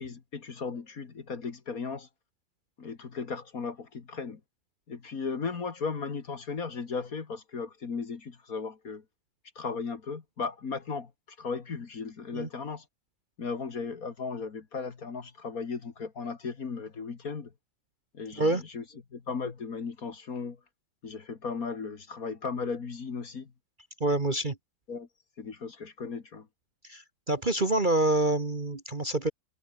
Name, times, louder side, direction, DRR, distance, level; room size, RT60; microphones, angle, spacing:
voice 1, 0.0-2.1 2.8-4.4 4.9-9.0 9.6-11.1 11.4-12.8 13.4-17.5 18.1-18.8 19.1-20.6 21.0-23.5 24.9-25.1 25.4-26.5, left 5 dB, 45° left, 2.2 m, -36 dB
voice 2, 24.0-24.6 26.9-29.3, right 2 dB, 25° right, 1.6 m, -27 dB
omnidirectional pair, 2.2 m